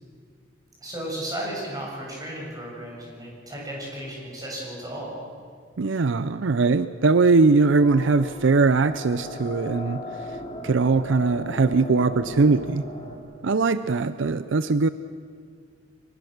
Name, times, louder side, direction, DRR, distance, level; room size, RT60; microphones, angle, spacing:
voice 1, 0.8-5.2, right 1 dB, 20° right, -3 dB, 7.3 m, -34 dB
voice 2, 5.8-10.4 10.6-12.9 13.4-14.9, right 4 dB, 70° right, 13 dB, 0.5 m, -21 dB
sound 1, 7.7-13.2, left 1 dB, 30° left, 3.4 m, -37 dB
24.5 x 20.5 x 6.5 m, 2.1 s
head